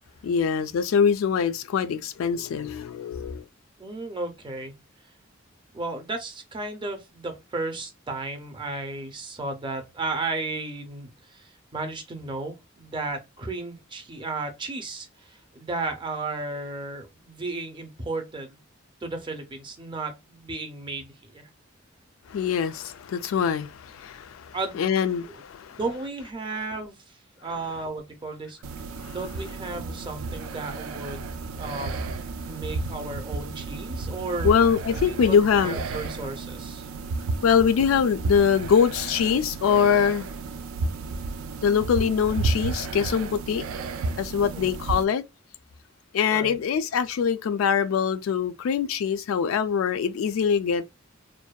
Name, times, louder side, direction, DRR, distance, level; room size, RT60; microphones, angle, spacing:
voice 1, 0.2-3.4 22.3-25.8 29.0-29.2 34.4-35.8 37.4-40.3 41.6-43.6 44.2-45.2 46.1-50.9, left 7 dB, 75° left, 0.3 m, -23 dB
voice 2, 3.8-4.7 5.7-18.6 19.0-21.5 24.5-25.4 25.7-27.2 27.4-28.6 29.1-32.2 32.4-34.5 35.1-36.9 44.4-44.8 46.3-46.6, right 3 dB, 25° right, 0.5 m, -34 dB
sound 1, 28.6-45.0, right 3 dB, 85° right, 0.3 m, -32 dB
2.6 x 2.1 x 2.2 m
head